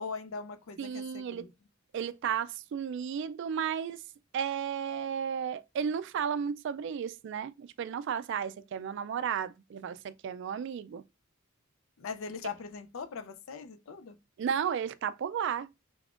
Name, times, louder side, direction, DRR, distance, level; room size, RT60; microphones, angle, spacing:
voice 1, 0.0-1.5 12.0-14.2, left 5 dB, 80° left, 0.5 m, -40 dB
voice 2, 0.8-1.5 1.9-4.0 4.3-11.0 14.4-15.7, right 7 dB, 60° right, 0.3 m, -33 dB
3.5 x 3.4 x 2.4 m
head